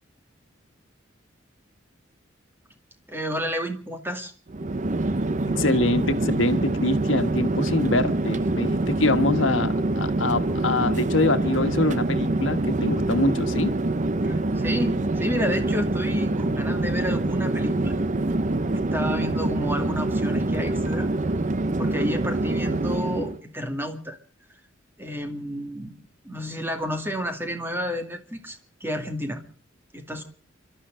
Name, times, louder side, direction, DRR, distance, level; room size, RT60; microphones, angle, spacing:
voice 1, 3.1-4.3 14.2-18.0 18.7-21.1 21.8-24.2 25.0-25.9 26.2-29.4 29.9-30.2, equal, 10° right, 5 dB, 2.3 m, -31 dB
Chatter / Fixed-wing aircraft airplane, 4.5-23.4, right 2 dB, 40° right, 0.7 m, -25 dB
voice 2, 5.5-13.7, left 2 dB, 80° left, 8 dB, 1.5 m, -24 dB
29.5 x 12.5 x 3.8 m, 0.42 s
head